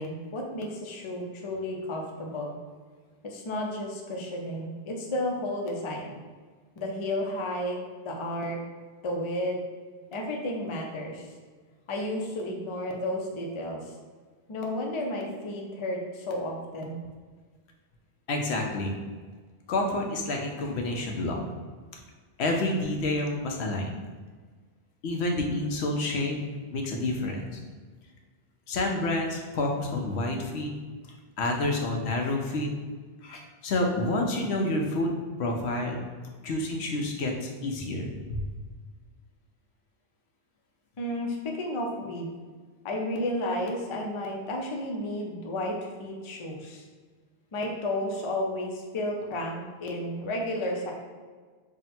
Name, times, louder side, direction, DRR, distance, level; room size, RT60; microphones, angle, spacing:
voice 1, 0.0-2.5 3.2-6.2 6.8-7.8 8.0-8.6 9.0-9.6 10.1-11.3 11.9-13.9 14.5-17.0 41.0-42.3 42.8-46.8 47.5-50.9, left 1 dB, 40° left, 1 dB, 0.4 m, -32 dB
voice 2, 18.3-18.9 19.7-21.4 22.4-23.9 25.0-26.4 26.7-27.6 28.7-30.7 31.4-32.7 33.2-35.1 35.4-36.0 36.4-38.4, left 2 dB, 90° left, 2 dB, 0.9 m, -29 dB
3.6 x 2.1 x 4.2 m, 1.5 s
omnidirectional pair, 1.1 m